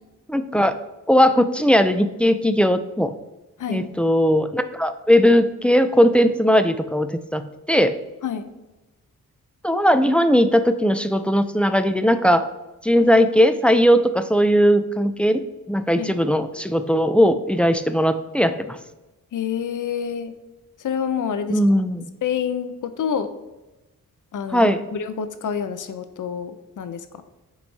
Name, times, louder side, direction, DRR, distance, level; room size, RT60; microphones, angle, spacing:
voice 1, 0.3-0.8 1.1-3.1 3.7-8.0 9.6-12.4 12.8-15.4 15.7-18.8 21.5-22.1 24.5-24.9, equal, 5° left, 10 dB, 0.3 m, -18 dB
voice 2, 19.3-20.3 20.8-21.6 22.2-23.3 24.3-27.0, left 7 dB, 60° left, 11 dB, 0.6 m, -27 dB
8.1 x 3.2 x 4.0 m, 1.1 s
cardioid pair, 70°, 34 cm